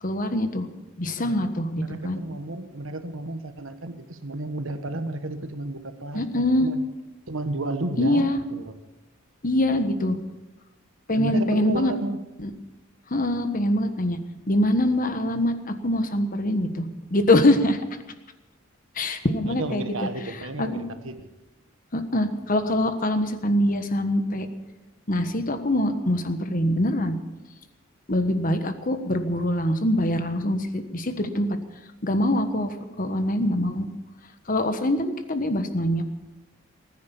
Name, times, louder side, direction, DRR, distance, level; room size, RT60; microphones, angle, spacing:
voice 1, 0.0-0.7 1.0-2.2 6.1-6.7 8.0-8.4 9.4-10.2 11.1-11.9 12.4-12.5 13.1-14.2 14.5-17.8 18.9-20.8 21.9-24.5 25.1-27.2 28.1-31.6 32.0-33.9 34.5-36.0, left 1 dB, 40° left, 8 dB, 1.4 m, -24 dB
voice 2, 1.7-6.8 7.3-8.7 11.1-12.2 19.5-21.1, right 2 dB, 75° right, 8 dB, 1.4 m, -32 dB
20.0 x 9.7 x 7.2 m, 1.1 s
head